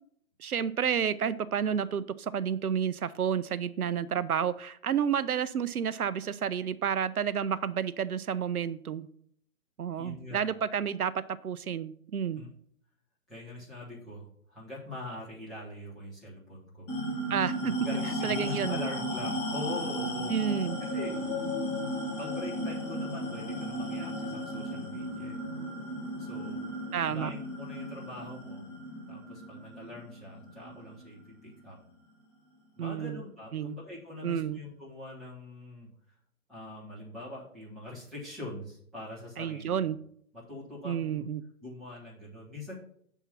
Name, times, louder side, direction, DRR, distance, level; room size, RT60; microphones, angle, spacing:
voice 1, 0.4-9.1 9.8-12.4 17.3-17.7 18.2-18.8 20.3-20.8 26.9-27.3 32.8-33.2 33.5-33.8 34.2-34.6 39.4-40.0 40.8-41.4, right 8 dB, 75° right, 15 dB, 0.5 m, -30 dB
voice 2, 9.9-10.5 12.3-12.5 13.3-16.9 17.6-20.4 20.9-21.2 22.2-25.4 26.2-26.7 27.0-28.7 29.1-31.8 32.8-35.9 36.5-39.8 40.3-41.3 41.6-42.7, left 2 dB, ahead, -12 dB, 0.7 m, -43 dB
sound 1, 16.9-31.7, equal, 25° left, 2.2 m, -35 dB
7.0 x 3.6 x 5.7 m, 0.64 s
figure-of-eight pair, 130°, 44 cm